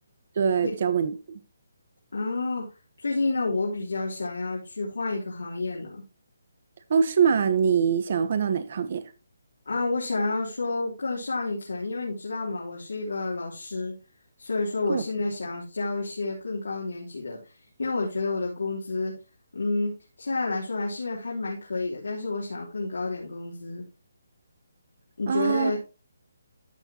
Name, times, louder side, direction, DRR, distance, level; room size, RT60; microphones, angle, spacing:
voice 1, 0.4-1.4 6.9-9.0 14.9-15.0 25.3-25.7, right 6 dB, 45° right, 1.1 m, -23 dB
voice 2, 2.1-2.7 3.0-6.0 9.6-14.0 14.4-17.4 17.8-19.2 19.5-23.8 25.2-25.8, left 3 dB, 90° left, 3.3 m, -30 dB
13.5 x 6.9 x 2.9 m
hypercardioid pair, 165°, 0 cm